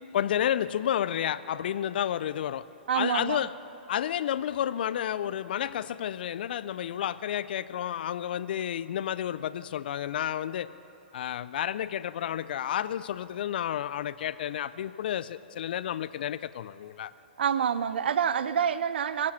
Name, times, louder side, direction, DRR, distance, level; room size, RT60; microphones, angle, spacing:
voice 1, 0.0-2.7 2.9-3.5 3.9-10.7 11.1-17.1, left 10 dB, 60° left, 16 dB, 0.4 m, -31 dB
voice 2, 2.9-3.4 17.4-19.3, right 8 dB, 70° right, 15 dB, 0.5 m, -27 dB
22.5 x 7.5 x 6.0 m, 2.9 s
hypercardioid pair, 130°, 6 cm